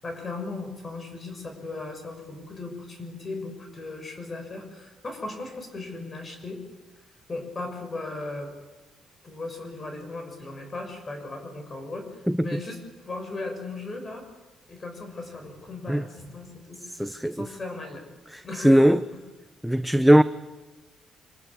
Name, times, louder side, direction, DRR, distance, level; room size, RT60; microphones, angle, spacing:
voice 1, 0.0-6.6 7.3-8.5 9.2-14.2 14.7-18.1 18.4-19.0, left 2 dB, 35° left, 6.7 m, -37 dB
voice 2, 12.3-12.6 15.9-16.0 16.9-17.5 18.3-19.0 19.6-20.2, equal, ahead, 0.8 m, -19 dB
25.0 x 20.0 x 8.5 m
cardioid pair, 90°, 0 cm